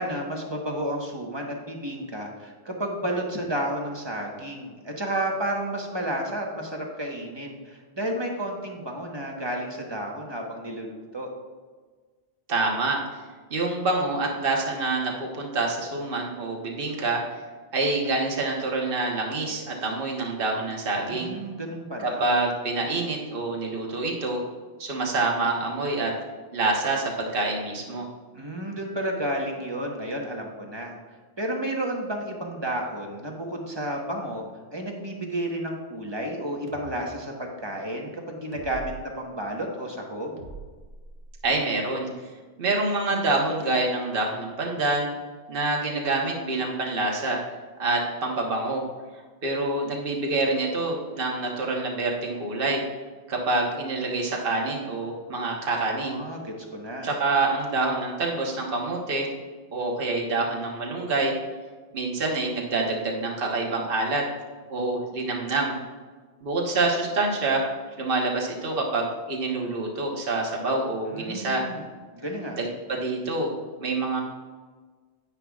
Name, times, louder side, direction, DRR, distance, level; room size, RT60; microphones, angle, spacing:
voice 1, 0.0-11.3 21.0-22.2 28.3-30.9 31.4-34.4 34.7-40.4 56.0-57.1 71.1-71.9 72.2-72.6, right 1 dB, 25° right, 0 dB, 1.2 m, -31 dB
voice 2, 12.5-13.0 13.5-17.2 17.7-21.3 22.0-24.4 24.8-26.1 26.5-28.1 41.4-42.1 42.6-45.1 45.5-47.4 47.8-48.8 49.4-52.8 53.3-56.2 57.0-59.3 59.7-61.3 61.9-64.3 64.7-65.7 66.4-67.7 68.0-71.7 72.6-73.5 73.8-74.2, right 2 dB, 55° right, -1 dB, 1.4 m, -26 dB
sound 1, 36.7-36.9 38.5-39.1 40.4-41.5, right 5 dB, 80° right, 1.4 m, -42 dB
10.0 x 9.7 x 2.4 m, 1.4 s
omnidirectional pair, 1.1 m